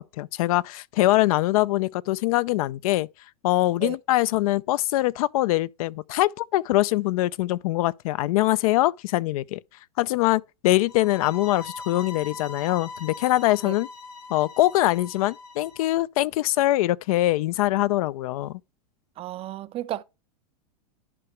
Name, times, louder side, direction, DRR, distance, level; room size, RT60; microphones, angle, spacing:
voice 1, 0.0-3.1 3.4-9.6 10.0-13.9 14.3-18.6, left 16 dB, 65° left, 0.4 m, -23 dB
sound 1, 10.9-15.9, left 4 dB, 85° left, 1.7 m, -41 dB
voice 2, 19.2-20.0, right 14 dB, 30° right, 0.4 m, -33 dB
11.0 x 4.9 x 3.2 m
hypercardioid pair, 115°, 20 cm